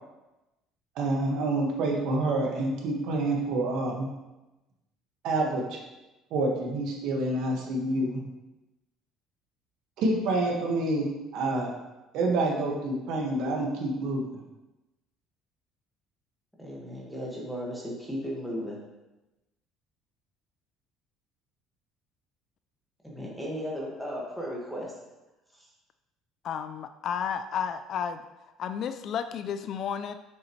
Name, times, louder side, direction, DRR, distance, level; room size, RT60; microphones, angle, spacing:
voice 1, 0.9-4.1 5.2-5.8 6.3-8.2 10.0-11.1 11.3-11.7 12.1-14.2, right 2 dB, 65° right, 0 dB, 1.5 m, -27 dB
voice 2, 16.6-18.8 23.0-24.9 25.5-25.7, equal, ahead, -4 dB, 1.6 m, -35 dB
voice 3, 26.4-28.2 28.6-30.2, left 7 dB, 45° left, 10 dB, 0.3 m, -32 dB
7.2 x 6.4 x 3.1 m, 1.0 s
cardioid pair, 150°, 0 cm